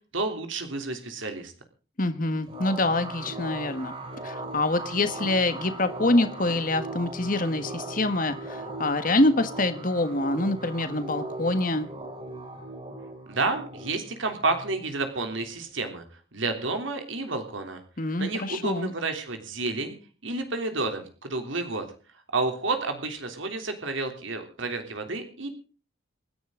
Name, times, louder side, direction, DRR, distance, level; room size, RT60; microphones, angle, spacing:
voice 1, 0.1-1.5 13.3-16.0 16.3-17.8 18.2-19.9 20.2-21.8 22.3-25.5, right 3 dB, 70° right, 6 dB, 3.3 m, -30 dB
voice 2, 2.0-3.9 4.2-11.9 18.0-18.9, left 2 dB, 40° left, 10 dB, 1.5 m, -25 dB
sound 1, 2.5-15.7, right 2 dB, 25° right, 5.7 m, -39 dB
26.5 x 10.5 x 3.8 m, 0.37 s
head